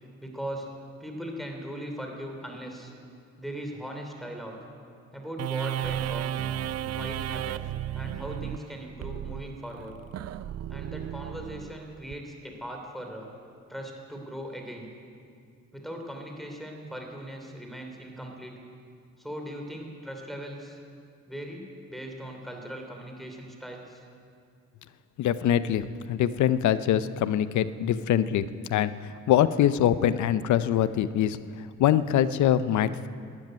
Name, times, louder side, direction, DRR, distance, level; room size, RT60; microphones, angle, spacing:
voice 1, 0.2-0.7 1.0-2.9 3.4-4.6 5.1-6.4 6.9-7.7 7.9-10.0 10.7-13.3 13.7-14.9 15.7-18.6 19.2-20.8 21.3-24.0, equal, ahead, 2 dB, 3.0 m, -39 dB
sound 1, 5.4-12.2, right 12 dB, 55° right, 0.5 m, -34 dB
voice 2, 25.2-28.4 28.7-28.9 29.3-31.4 31.8-33.1, left 10 dB, 70° left, 14 dB, 0.7 m, -23 dB
13.0 x 10.5 x 9.2 m, 2.4 s
cardioid pair, 90°, 30 cm